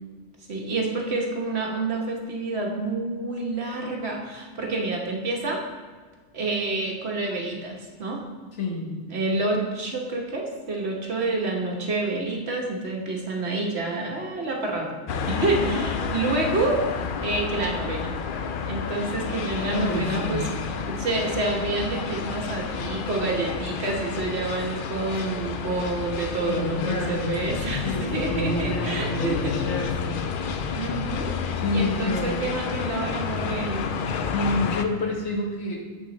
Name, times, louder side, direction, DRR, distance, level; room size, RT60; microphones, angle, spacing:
voice 1, 0.5-5.6 6.3-8.2 9.1-15.0 15.3-16.8 17.2-18.1 18.7-20.4 20.9-29.5 30.7-31.4 31.7-33.9, right 2 dB, 65° right, 0 dB, 1.4 m, -28 dB
voice 2, 8.6-8.9 15.3-15.9 19.6-20.4 26.5-27.4 27.8-30.2 31.5-32.4 34.3-35.8, left 2 dB, 80° left, 0 dB, 1.6 m, -29 dB
sound 1, 15.1-34.9, left 6 dB, 60° left, 0.6 m, -30 dB
7.6 x 6.0 x 4.0 m, 1.4 s
omnidirectional pair, 1.2 m